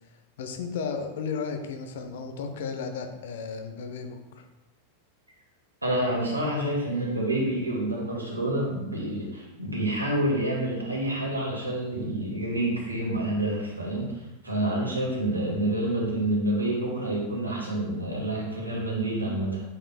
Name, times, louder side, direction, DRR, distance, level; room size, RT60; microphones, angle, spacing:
voice 1, 0.4-4.5, left 5 dB, 55° left, 6 dB, 0.7 m, -34 dB
voice 2, 5.8-19.6, right 1 dB, 85° right, -3 dB, 1.9 m, -28 dB
8.5 x 5.3 x 2.2 m, 1.0 s
figure-of-eight pair, 90°, 0 cm